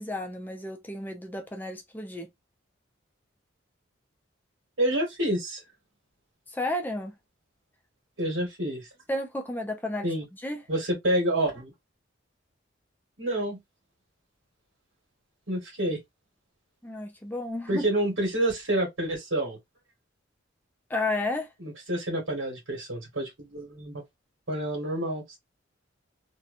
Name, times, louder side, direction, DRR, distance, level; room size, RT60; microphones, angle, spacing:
voice 1, 0.0-2.3 6.5-7.2 9.1-10.1 10.4-10.6 16.8-17.9 20.9-21.5, left 2 dB, 10° left, 0.4 m, -32 dB
voice 2, 4.8-5.6 8.2-8.9 10.0-10.2 10.7-11.7 13.2-13.6 15.5-16.0 17.7-19.6 21.6-24.0 24.5-25.4, right 1 dB, 70° right, 1.4 m, -28 dB
2.8 x 2.2 x 2.5 m
head